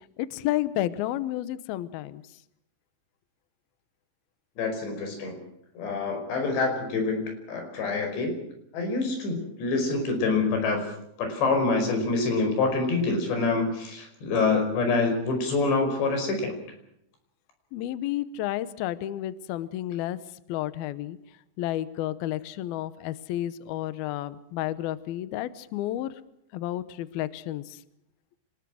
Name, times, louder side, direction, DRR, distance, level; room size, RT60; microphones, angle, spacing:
voice 1, 0.0-2.2 17.7-20.2 20.5-21.2 21.6-26.1 26.5-27.8, left 13 dB, 85° left, 15 dB, 2.1 m, -31 dB
voice 2, 4.6-5.4 5.8-8.3 8.7-10.9 11.2-16.5, left 3 dB, 60° left, 5 dB, 7.4 m, -26 dB
27.5 x 20.0 x 6.3 m, 0.75 s
omnidirectional pair, 5.7 m